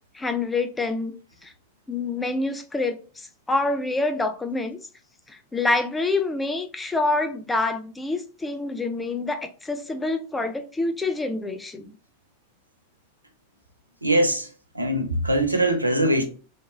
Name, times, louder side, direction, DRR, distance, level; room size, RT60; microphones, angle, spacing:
voice 1, 0.1-1.1 1.4-1.5 1.9-4.8 5.3-11.9, left 2 dB, 10° left, 0.3 m, -27 dB
voice 2, 14.0-14.5 14.7-16.2, right 1 dB, 85° right, 0.5 m, -22 dB
2.8 x 2.6 x 2.3 m
figure-of-eight pair, 90°, 0 cm